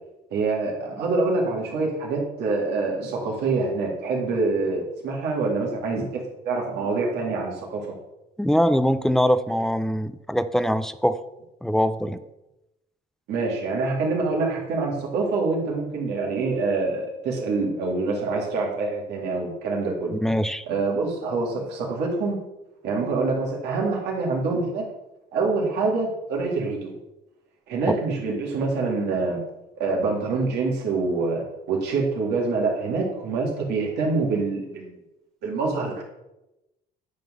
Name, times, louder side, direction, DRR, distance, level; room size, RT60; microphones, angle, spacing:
voice 1, 0.3-7.9 13.3-20.1 20.7-22.4 22.8-24.8 25.3-27.0 27.7-29.4 29.8-34.9 35.4-36.0, right 3 dB, 80° right, -2 dB, 2.1 m, -25 dB
voice 2, 8.4-11.2 11.6-12.2 20.2-20.6 27.9-28.0, equal, 5° left, 13 dB, 0.4 m, -22 dB
9.2 x 3.8 x 6.3 m, 0.96 s
cardioid pair, 110°, 17 cm